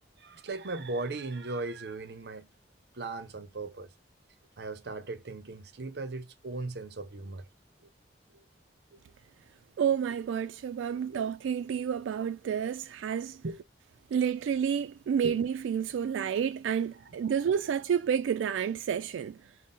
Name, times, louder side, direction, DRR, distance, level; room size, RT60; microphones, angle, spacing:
voice 1, 0.2-2.5 2.9-3.9 4.6-7.4 7.8-7.9 8.3-8.4 8.9-9.0 10.9-11.2 13.4-13.6 15.2-15.4 17.2-17.4, right 3 dB, 60° right, 0.6 m, -38 dB
voice 2, 9.8-13.4 14.1-19.5, right 8 dB, 90° right, 0.3 m, -30 dB
3.7 x 2.1 x 3.9 m
head